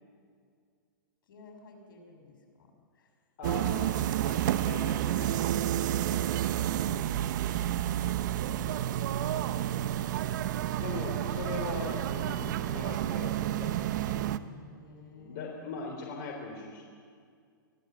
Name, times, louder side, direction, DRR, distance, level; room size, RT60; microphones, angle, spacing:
voice 1, 1.2-3.1 3.6-3.9 6.7-9.3 14.5-16.0, left 3 dB, 70° left, 3 dB, 6.3 m, -51 dB
voice 2, 3.4-3.8 4.2-6.3 10.8-14.4 15.1-16.8, left 4 dB, 45° left, 0 dB, 3.6 m, -41 dB
sound 1, 3.4-14.4, right 12 dB, 60° right, 0.9 m, -30 dB
24.0 x 16.0 x 8.1 m, 2.1 s
hypercardioid pair, 130°, 11 cm